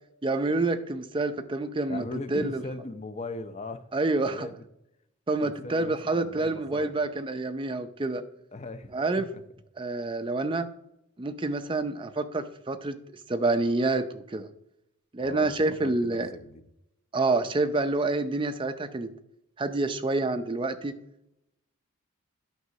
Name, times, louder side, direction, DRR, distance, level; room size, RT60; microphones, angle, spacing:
voice 1, 0.2-2.1 2.3-2.6 3.9-4.5 5.3-8.2 8.9-9.3 9.8-10.7 11.2-13.0 13.3-14.5 15.1-16.3 17.1-19.1 19.6-21.0, right 2 dB, 25° right, 9 dB, 0.5 m, -27 dB
voice 2, 1.9-3.9 4.3-4.5 5.4-6.9 8.5-9.4 15.2-16.7, left 3 dB, 30° left, 10 dB, 0.5 m, -39 dB
9.3 x 6.0 x 2.7 m, 0.79 s
head